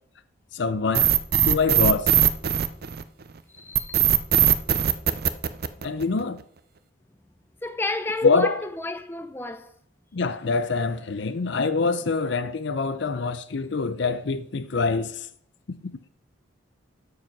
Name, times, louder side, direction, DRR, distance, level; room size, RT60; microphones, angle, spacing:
voice 1, 0.5-1.1 1.4-2.1 5.8-6.4 8.2-8.6 10.1-15.3, left 4 dB, 60° left, 0.5 m, -24 dB
sound 1, 0.9-3.2 3.7-6.2, right 10 dB, 50° right, 0.5 m, -20 dB
voice 2, 3.5-4.0 7.6-9.7, left 2 dB, 10° left, 0.5 m, -31 dB
13.0 x 4.9 x 5.8 m
head